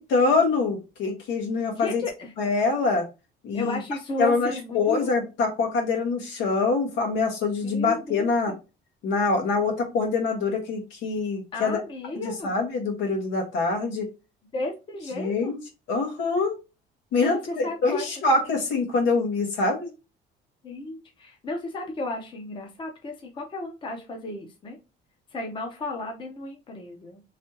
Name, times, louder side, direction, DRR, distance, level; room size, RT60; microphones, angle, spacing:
voice 1, 0.0-2.0 2.4-3.0 3.4-3.8 4.2-8.5 9.0-11.8 12.2-14.1 15.2-15.6 15.9-16.5 17.1-19.9, left 3 dB, 80° left, 1 dB, 1.6 m, -25 dB
voice 2, 1.7-2.3 3.5-5.1 7.6-8.6 11.5-12.5 14.5-15.5 17.2-18.1 20.6-24.8 25.3-27.2, left 2 dB, 25° left, 3 dB, 0.7 m, -34 dB
3.5 x 3.2 x 2.8 m, 0.27 s
cardioid pair, 165°, 20 cm